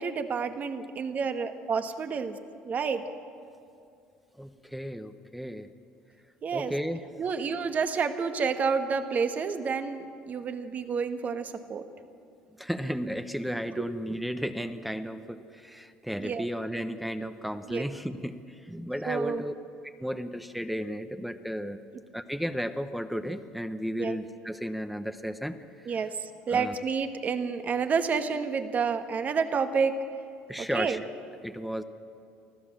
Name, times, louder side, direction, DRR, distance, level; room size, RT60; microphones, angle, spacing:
voice 1, 0.0-2.4 2.6-3.0 6.4-6.7 7.2-11.8 16.2-16.4 17.7-17.8 19.0-19.4 24.0-24.2 25.9-29.9 30.6-31.0, right 5 dB, 40° right, 8 dB, 1.5 m, -29 dB
voice 2, 4.4-5.7 6.5-7.0 12.6-19.5 20.0-21.8 22.1-26.0 26.5-26.7 30.5-31.0 31.4-31.8, equal, ahead, 9 dB, 1.0 m, -34 dB
24.0 x 15.0 x 7.4 m, 2.4 s
supercardioid pair, 85°, 4 cm